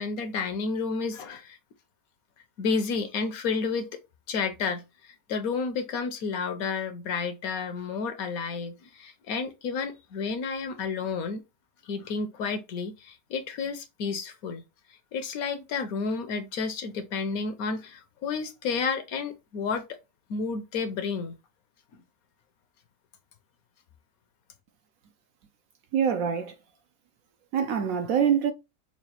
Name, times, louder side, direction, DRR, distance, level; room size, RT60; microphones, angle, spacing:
voice 1, 0.0-1.6 2.6-3.9 4.3-11.4 11.8-14.6 15.1-19.8 20.3-21.4, left 5 dB, 65° left, 1.0 m, -31 dB
voice 2, 25.9-26.6 27.5-28.5, right 8 dB, 70° right, 0.9 m, -24 dB
5.8 x 2.4 x 2.9 m
omnidirectional pair, 1.8 m